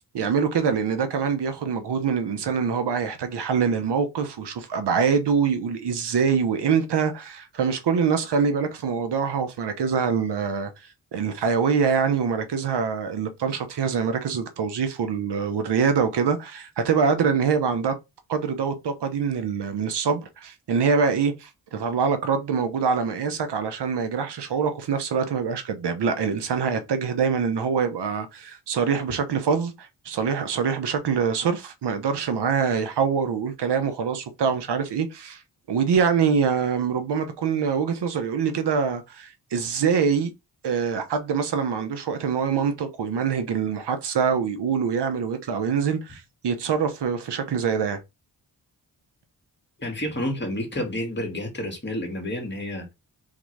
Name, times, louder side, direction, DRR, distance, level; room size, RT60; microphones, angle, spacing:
voice 1, 0.1-10.7 11.1-17.9 18.3-35.4 35.7-40.3 40.6-48.0, right 6 dB, 80° right, 1.0 m, -24 dB
voice 2, 49.8-52.9, left 1 dB, 25° left, 1.9 m, -30 dB
3.8 x 3.6 x 3.3 m
cardioid pair, 85°, 40 cm